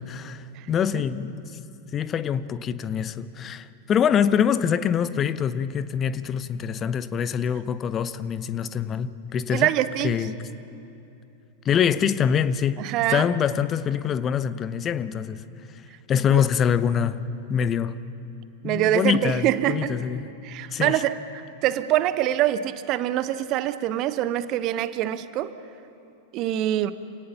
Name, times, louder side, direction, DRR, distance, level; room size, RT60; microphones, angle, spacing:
voice 1, 0.0-1.4 1.9-9.7 10.0-10.3 11.6-12.8 13.1-15.4 16.1-17.2 17.5-18.0 18.6-20.3 20.7-21.0, left 8 dB, 25° left, 0.8 m, -24 dB
voice 2, 9.5-10.2 12.8-13.3 16.3-16.4 18.6-20.0 20.4-25.5 26.3-26.9, right 13 dB, 40° right, 0.9 m, -24 dB
28.0 x 17.5 x 5.7 m
figure-of-eight pair, 90°, 0 cm